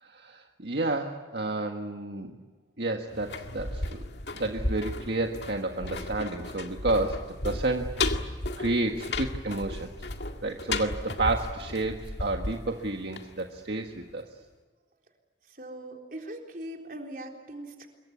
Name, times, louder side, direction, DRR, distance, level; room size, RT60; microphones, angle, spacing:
voice 1, 0.0-2.3 2.8-4.0 4.3-8.2 8.6-9.9 10.4-14.2, right 2 dB, 70° right, 3 dB, 1.6 m, -31 dB
sound 1, 3.1-13.9 14.2-14.3, left 2 dB, 75° left, 2.0 m, -34 dB
voice 2, 15.5-17.9, right 1 dB, 50° right, 2 dB, 3.9 m, -41 dB
26.0 x 23.0 x 8.4 m, 1.4 s
head